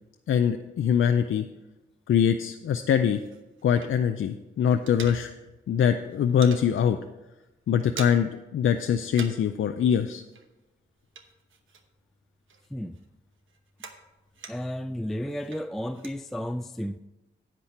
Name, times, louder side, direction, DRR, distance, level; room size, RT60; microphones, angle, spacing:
voice 1, 0.3-1.4 2.1-3.2 3.6-5.3 5.7-7.0 7.7-10.2, left 8 dB, 85° left, 0.5 m, -23 dB
sound 1, 2.8-4.3 4.5-5.7 5.9-6.7 7.1-7.3 7.5-8.4 8.7-9.6 9.8-12.1 12.5-14.8 15.3-16.2, right 5 dB, 90° right, 1.0 m, -44 dB
voice 2, 14.5-17.0, equal, ahead, 0.3 m, -33 dB
10.5 x 8.2 x 4.3 m
cardioid pair, 80°, 20 cm